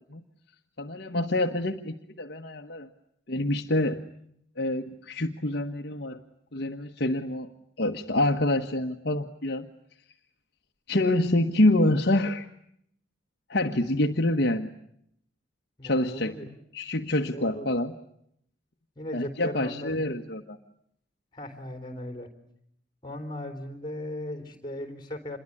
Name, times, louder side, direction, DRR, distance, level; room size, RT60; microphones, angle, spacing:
voice 1, 0.8-2.9 3.3-4.0 4.6-6.2 6.5-7.5 7.8-9.7 10.9-12.5 13.5-14.7 15.8-16.3 16.7-17.9 19.1-20.6, left 1 dB, 55° left, 4 dB, 1.3 m, -26 dB
voice 2, 15.8-16.5 17.3-17.8 19.0-20.2 21.3-22.3 23.0-25.4, left 1 dB, 20° left, 8 dB, 3.9 m, -37 dB
27.5 x 22.0 x 9.9 m, 0.72 s
head